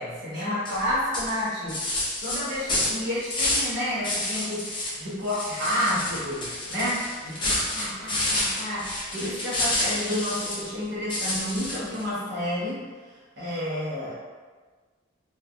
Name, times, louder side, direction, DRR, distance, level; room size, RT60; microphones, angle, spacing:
voice 1, 0.0-12.8 13.4-14.1, left 1 dB, 55° right, -9 dB, 1.0 m, -30 dB
sound 1, 0.6-0.8 1.1-3.7 4.0-5.0 5.2-10.7 11.1-12.0, left 1 dB, 25° left, 0.6 m, -29 dB
3.3 x 2.4 x 2.2 m, 1.4 s
head